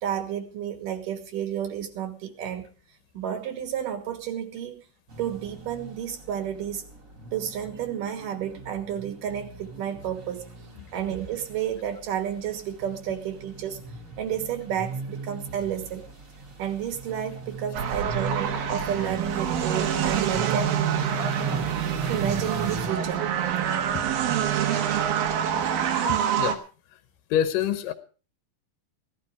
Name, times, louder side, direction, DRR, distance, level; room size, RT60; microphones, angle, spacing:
voice 1, 0.0-2.7 3.1-4.8 5.2-6.8 7.3-10.5 10.9-13.8 14.2-16.1 16.6-20.8 22.1-23.3, right 9 dB, 70° right, 8 dB, 3.0 m, -31 dB
sound 1, 5.1-22.9, right 3 dB, 30° right, 2.0 m, -38 dB
sound 2, 17.7-26.5, right 9 dB, 85° right, 3.2 m, -26 dB
voice 2, 26.1-26.6 26.9-27.0 27.3-27.9, left 10 dB, 75° left, 11 dB, 2.5 m, -27 dB
17.0 x 12.0 x 4.7 m, 0.37 s
omnidirectional pair, 4.0 m